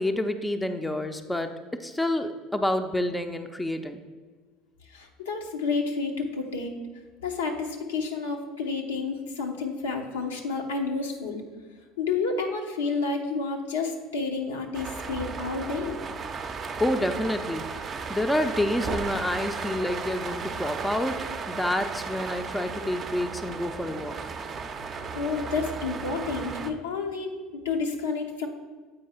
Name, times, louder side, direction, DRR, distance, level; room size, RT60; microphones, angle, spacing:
voice 1, 0.0-1.5 1.8-4.0 16.8-24.2, left 1 dB, 10° left, 7 dB, 0.5 m, -28 dB
voice 2, 4.8-6.7 7.2-11.4 12.0-16.0 25.1-28.5, left 4 dB, 80° left, 2 dB, 0.8 m, -30 dB
sound 1, 14.7-26.7, right 5 dB, 35° right, 0.6 m, -35 dB
7.8 x 4.6 x 4.3 m, 1.4 s
hypercardioid pair, 70°, 0 cm